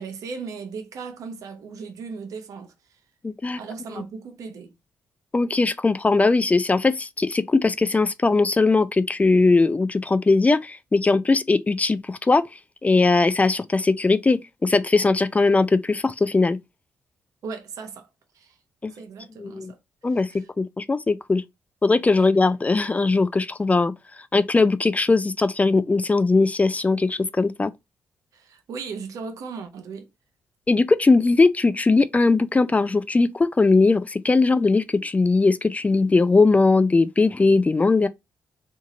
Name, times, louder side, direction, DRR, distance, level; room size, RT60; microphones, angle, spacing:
voice 1, 0.0-3.0 3.6-4.7 17.4-18.1 18.3-18.6 18.9-19.8 20.1-20.5 22.2-22.3 28.3-30.1, right 5 dB, 70° right, 0.8 m, -37 dB
voice 2, 3.2-3.6 5.3-12.4 12.8-16.6 18.8-18.9 19.4-19.7 20.0-20.3 20.6-21.4 21.8-23.9 24.3-27.7 30.7-38.1, left 3 dB, 25° left, 0.3 m, -20 dB
2.7 x 2.5 x 3.8 m
supercardioid pair, 50°, 6 cm